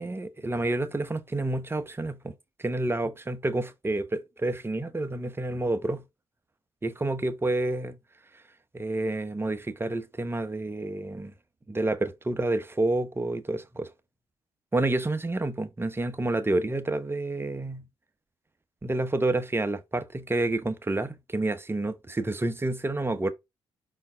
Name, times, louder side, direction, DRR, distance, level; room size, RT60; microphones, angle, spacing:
voice 1, 0.0-2.3 2.6-6.0 6.8-8.0 8.7-11.3 11.7-13.9 14.7-17.8 18.8-23.3, right 2 dB, 20° right, 1.0 m, -29 dB
5.4 x 4.4 x 3.9 m
supercardioid pair, 55°, 11 cm